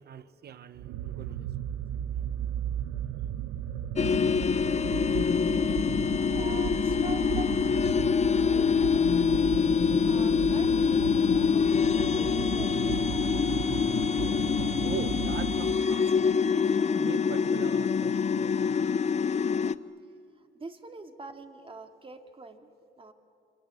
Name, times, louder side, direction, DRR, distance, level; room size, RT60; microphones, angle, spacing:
voice 1, 0.0-1.5 14.8-19.0, right 8 dB, 55° right, 1.0 m, -42 dB
sound 1, 0.8-16.1, right 10 dB, 90° right, 0.8 m, -35 dB
sound 2, 4.0-19.8, left 6 dB, 35° left, 0.7 m, -25 dB
voice 2, 6.2-8.8 9.1-9.5 10.0-13.3 20.3-23.1, right 3 dB, 25° right, 2.3 m, -45 dB
28.0 x 25.5 x 8.4 m
cardioid pair, 90°, 20 cm